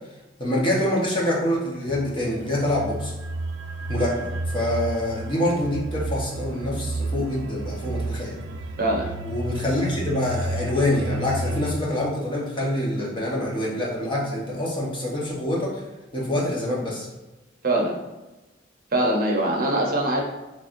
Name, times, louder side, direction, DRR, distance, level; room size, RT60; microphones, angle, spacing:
voice 1, 0.4-3.1 3.9-8.3 9.3-15.8 16.1-17.1, left 1 dB, 25° left, -4 dB, 0.9 m, -25 dB
sound 1, 1.9-11.7, right 1 dB, 75° right, 0.3 m, -32 dB
voice 2, 8.8-9.1 17.6-18.0 18.9-20.2, right 1 dB, 50° right, 0 dB, 0.7 m, -22 dB
4.1 x 3.1 x 2.5 m, 1.1 s
head